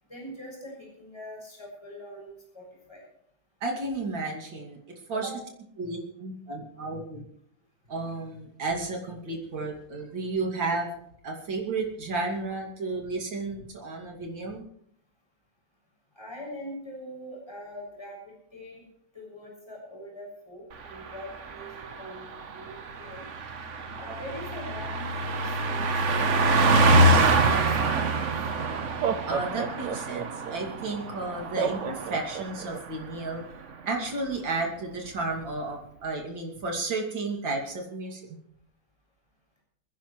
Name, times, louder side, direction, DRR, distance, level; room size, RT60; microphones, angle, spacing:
voice 1, 0.1-3.0 5.1-5.4 16.2-18.8 19.1-23.2 24.0-28.3 29.5-29.6, equal, 15° left, -3 dB, 7.0 m, -43 dB
voice 2, 3.6-4.8 5.1-5.3 5.8-7.2 7.9-10.9 11.2-14.6 29.2-33.4 33.8-38.2, right 3 dB, 90° right, 0 dB, 3.4 m, -32 dB
Car passing by, 20.8-32.7 33.0-33.3, right 2 dB, 45° right, 1.3 m, -26 dB
Laughter, 28.9-30.6 31.6-32.8, right 7 dB, 70° right, 1.5 m, -31 dB
28.5 x 10.5 x 3.2 m, 0.68 s
omnidirectional pair, 2.0 m